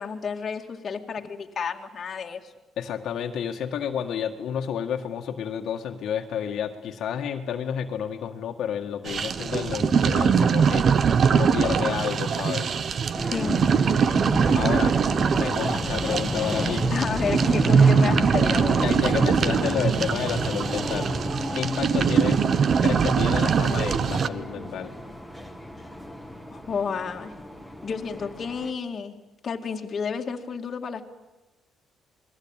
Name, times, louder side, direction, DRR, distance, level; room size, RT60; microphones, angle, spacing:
voice 1, 0.0-2.5 13.3-13.6 16.9-18.8 26.5-27.3 27.8-29.2 29.4-31.0, left 6 dB, 35° left, 3 dB, 2.1 m, -31 dB
voice 2, 2.8-12.8 14.5-15.0 15.4-16.9 18.8-21.1 21.5-22.5 22.8-24.9, left 8 dB, 60° left, 3 dB, 1.8 m, -30 dB
sound 1, 9.1-24.3, right 6 dB, 40° right, 1.0 m, -22 dB
sound 2, 13.2-28.7, left 1 dB, ahead, 2.2 m, -32 dB
28.0 x 20.5 x 9.0 m, 1.1 s
cardioid pair, 145°, 0 cm